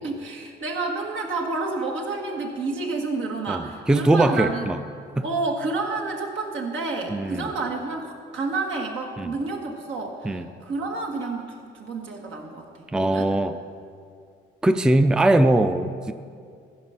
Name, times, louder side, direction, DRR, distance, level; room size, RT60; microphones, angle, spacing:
voice 1, 0.0-4.7 5.2-12.7 12.9-13.3, right 3 dB, 75° right, 1 dB, 1.6 m, -29 dB
voice 2, 3.5-4.8 5.2-5.3 7.1-7.5 9.2-9.3 10.2-10.4 12.9-13.6 14.6-16.1, right 1 dB, 5° right, 10 dB, 0.4 m, -21 dB
15.0 x 5.3 x 5.7 m, 2.3 s
cardioid pair, 90°, 20 cm